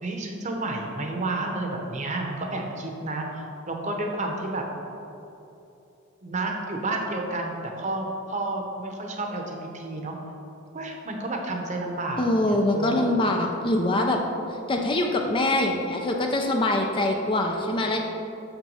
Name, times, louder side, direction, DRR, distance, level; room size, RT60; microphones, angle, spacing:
voice 1, 0.0-4.6 6.2-10.1 10.7-13.2, right 2 dB, 35° right, 2 dB, 0.9 m, -31 dB
voice 2, 12.2-14.2 14.7-18.0, left 1 dB, 25° left, 2 dB, 0.5 m, -24 dB
6.8 x 6.0 x 5.5 m, 2.9 s
head